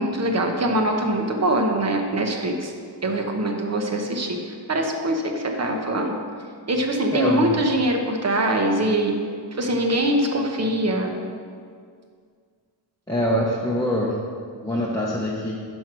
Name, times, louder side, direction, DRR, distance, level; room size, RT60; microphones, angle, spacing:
voice 1, 0.0-2.7 3.0-6.1 6.7-9.1 9.5-11.2, right 1 dB, 35° right, 2 dB, 1.0 m, -23 dB
voice 2, 7.1-7.6 13.1-14.1 14.6-15.5, equal, 10° left, -5 dB, 0.8 m, -24 dB
11.0 x 4.6 x 6.1 m, 2.1 s
wide cardioid pair, 165°, 44 cm